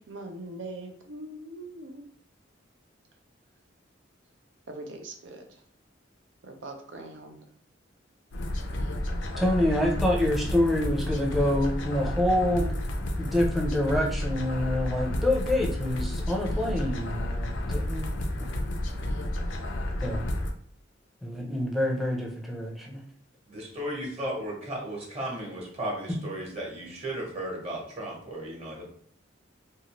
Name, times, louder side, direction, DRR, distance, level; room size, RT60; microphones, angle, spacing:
voice 1, 0.0-2.1 4.7-5.6 6.4-7.4, right 2 dB, 80° right, 4 dB, 0.6 m, -41 dB
sound 1, 8.3-20.5, left 1 dB, 75° left, 0.5 m, -31 dB
voice 2, 9.4-12.7 13.2-18.2 20.0-20.2 21.2-23.0 26.1-26.2, left 1 dB, ahead, -1 dB, 0.6 m, -27 dB
voice 3, 23.5-28.8, right 1 dB, 35° right, -2 dB, 1.1 m, -35 dB
2.6 x 2.4 x 3.0 m, 0.62 s
head